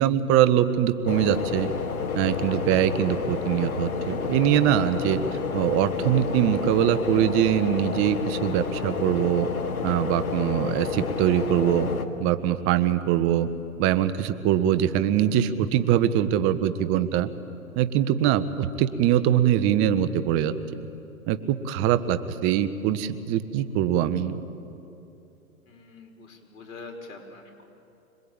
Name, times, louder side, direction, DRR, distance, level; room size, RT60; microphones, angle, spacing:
voice 1, 0.0-1.7 2.1-5.2 5.5-9.5 9.8-11.9 12.2-13.5 13.8-17.3 17.8-20.5 21.3-24.4, right 11 dB, 30° right, 12 dB, 1.2 m, -23 dB
sound 1, 1.1-12.1, left 5 dB, 85° left, 1.9 m, -30 dB
voice 2, 25.7-27.6, left 3 dB, 70° left, 3 dB, 5.4 m, -44 dB
26.0 x 21.0 x 8.9 m, 2.7 s
hypercardioid pair, 120°, 42 cm